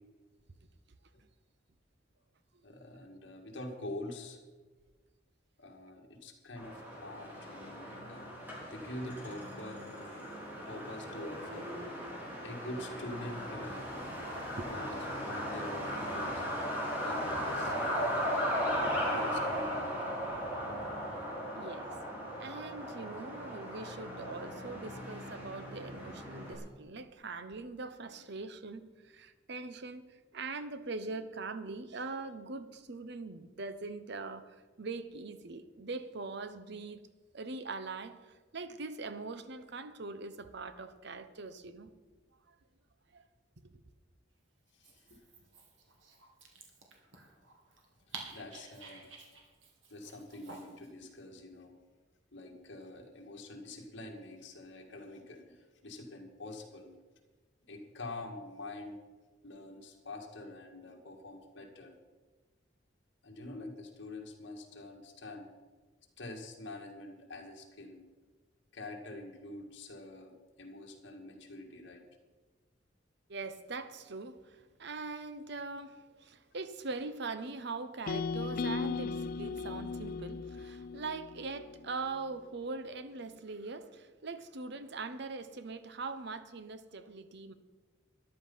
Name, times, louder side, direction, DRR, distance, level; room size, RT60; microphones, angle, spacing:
voice 1, 2.6-4.4 5.6-8.3 8.7-10.3 10.7-11.7 12.4-13.9 14.6-16.4 17.0-18.1 19.0-20.0 44.8-45.2 48.3-49.1 49.9-51.7 52.3-56.9 57.7-59.0 59.4-61.9 63.2-65.5 66.2-68.0 68.7-70.3 70.6-72.0, left 1 dB, 65° left, 2.2 m, -46 dB
Truck, 6.6-26.6, equal, 10° right, 4.0 m, -37 dB
voice 2, 21.5-21.9 22.4-37.0 37.3-41.9 42.5-42.6 43.1-43.2 43.7-43.8 73.3-87.5, right 3 dB, 65° right, 0.9 m, -42 dB
Dog, 44.7-50.9, right 3 dB, 85° right, 2.4 m, -52 dB
sound 1, 78.1-82.2, left 4 dB, 50° left, 0.3 m, -37 dB
13.5 x 11.0 x 5.7 m
head